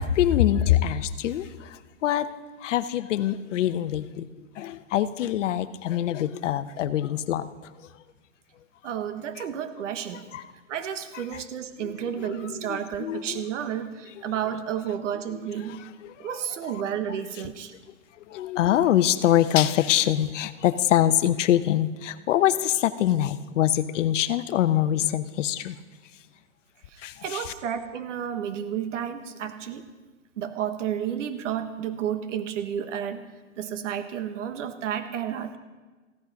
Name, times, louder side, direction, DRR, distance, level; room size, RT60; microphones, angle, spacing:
voice 1, 0.0-2.3 2.6-7.7 10.3-10.4 11.3-11.4 12.2-13.4 14.1-14.3 15.6-16.4 16.7-16.8 17.1-17.2 18.2-25.8 27.0-27.5, left 11 dB, 65° left, 13 dB, 0.8 m, -25 dB
voice 2, 8.8-10.2 10.7-15.8 16.2-17.7 26.9-29.8 30.4-33.2 33.6-35.6, right 9 dB, 65° right, 10 dB, 1.2 m, -31 dB
15.5 x 11.0 x 5.2 m, 1.3 s
hypercardioid pair, 145°, 39 cm